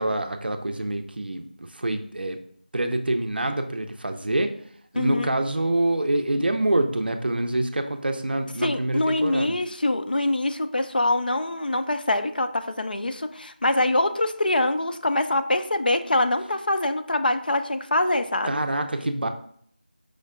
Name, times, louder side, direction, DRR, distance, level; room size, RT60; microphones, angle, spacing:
voice 1, 0.0-2.4 2.7-4.5 4.9-9.6 18.4-19.3, right 1 dB, 70° right, 6 dB, 0.5 m, -26 dB
voice 2, 5.0-5.4 8.6-18.6, left 1 dB, 60° left, 8 dB, 0.4 m, -24 dB
5.0 x 2.2 x 3.6 m, 0.63 s
figure-of-eight pair, 175°, 5 cm